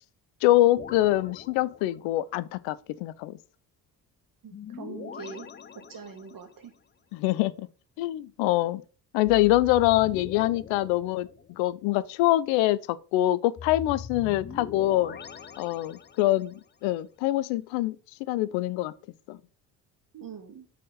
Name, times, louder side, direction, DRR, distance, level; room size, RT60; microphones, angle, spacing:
voice 1, 0.4-3.4 7.1-7.7 8.0-8.8 9.1-11.3 11.6-15.2 15.6-18.0 18.3-18.9 19.3-19.4, left 15 dB, 70° left, 0.6 m, -24 dB
sound 1, 0.7-2.3 4.5-6.6 9.3-11.8 13.6-16.5, left 7 dB, 25° left, 0.5 m, -42 dB
voice 2, 4.4-5.5 5.9-6.7 20.1-20.6, right 6 dB, 45° right, 1.8 m, -42 dB
6.3 x 4.2 x 5.5 m
hypercardioid pair, 50°, 48 cm